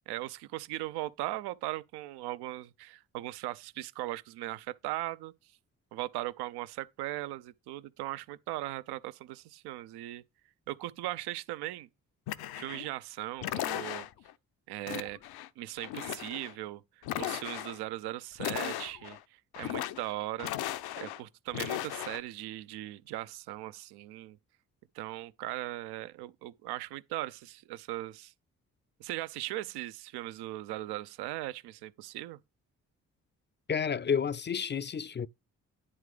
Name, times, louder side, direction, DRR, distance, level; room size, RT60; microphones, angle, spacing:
voice 1, 0.1-5.3 5.9-10.2 10.7-11.9 12.5-14.1 14.7-15.2 15.6-16.8 17.2-20.5 21.0-24.4 24.9-28.3 29.0-32.4, right 16 dB, 75° right, 0.8 m, -38 dB
sound 1, 12.3-12.9 13.4-14.3 14.9-15.5 15.8-16.5 17.0-17.8 18.4-19.2 19.5-20.1 20.4-21.2 21.5-22.2, left 13 dB, 65° left, 0.8 m, -36 dB
voice 2, 33.7-35.3, left 7 dB, 25° left, 0.6 m, -30 dB
10.0 x 3.6 x 5.0 m
hypercardioid pair, 40°, 40 cm